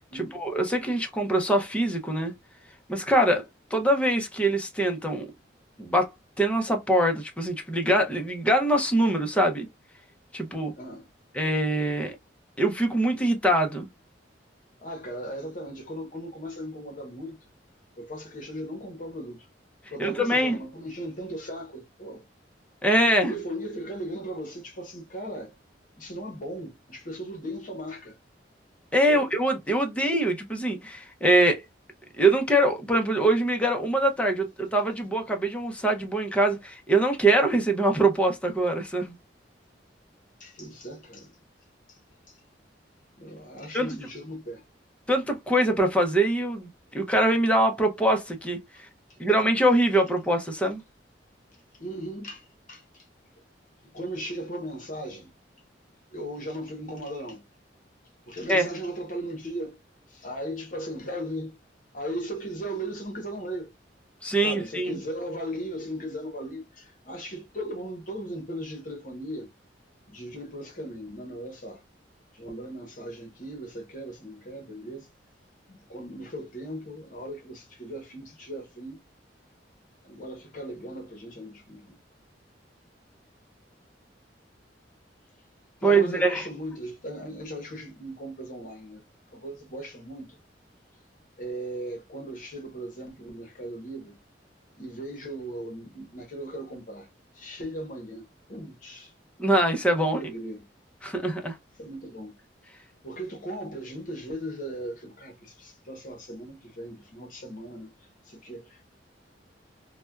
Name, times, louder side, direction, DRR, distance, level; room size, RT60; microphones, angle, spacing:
voice 1, 0.1-2.3 2.9-3.4 3.7-5.3 5.8-6.1 6.4-9.7 10.3-10.7 11.3-12.2 12.6-13.9 20.0-20.6 22.8-23.3 28.9-31.6 32.2-39.1 43.7-44.0 45.1-48.9 49.2-50.8 58.5-58.7 64.2-65.0 85.8-86.4 99.4-100.2 101.0-101.6, right 1 dB, 5° left, 0.6 m, -23 dB
voice 2, 10.8-11.1 14.8-17.3 18.0-19.5 19.9-22.2 23.2-25.5 26.0-28.2 29.1-29.3 40.4-41.3 41.9-42.0 42.3-42.4 43.2-44.6 51.7-53.1 53.8-55.3 56.1-57.4 58.3-59.8 60.1-61.6 61.9-63.7 64.4-69.5 70.1-71.8 72.3-75.1 75.7-79.0 80.0-82.0 85.8-89.0 89.3-90.4 91.4-94.2 94.8-97.1 97.3-99.1 100.0-100.6 101.8-102.4 103.0-108.8, right 1 dB, 45° left, 1.0 m, -37 dB
4.1 x 2.2 x 2.3 m
head